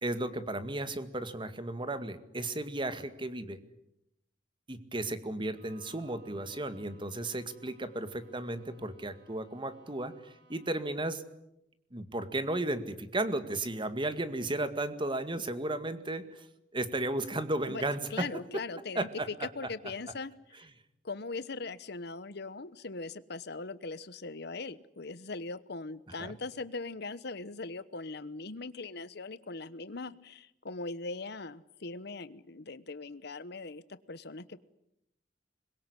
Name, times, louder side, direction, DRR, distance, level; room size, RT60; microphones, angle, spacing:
voice 1, 0.0-3.6 4.7-11.2 11.9-16.5 16.7-18.3 18.5-18.6 19.0-19.3 26.1-26.3, right 2 dB, 25° right, 11 dB, 2.0 m, -34 dB
Bowed string instrument, 5.5-11.0, right 2 dB, 65° right, 7.9 m, -64 dB
voice 2, 18.1-20.3 20.6-20.7 21.0-33.8 34.1-34.6, left 3 dB, 65° left, 15 dB, 1.1 m, -40 dB
25.5 x 22.5 x 9.9 m, 0.82 s
head